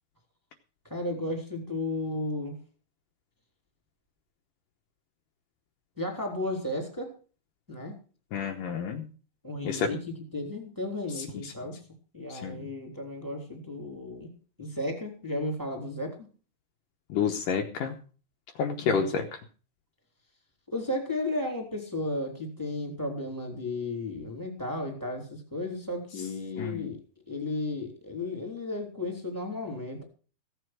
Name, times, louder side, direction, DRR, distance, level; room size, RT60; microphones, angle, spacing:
voice 1, 0.8-2.5 6.0-7.1 7.7-8.0 9.4-10.0 10.3-11.8 12.1-14.3 14.6-16.3 18.8-19.2 20.7-27.0 27.3-30.0, left 2 dB, 5° right, 2 dB, 3.0 m, -34 dB
voice 2, 8.3-9.1 9.6-9.9 11.2-11.5 12.3-12.7 17.1-18.0 18.6-19.3 26.6-27.0, left 6 dB, 70° left, 3 dB, 2.4 m, -30 dB
16.0 x 8.0 x 6.2 m, 0.39 s
omnidirectional pair, 4.4 m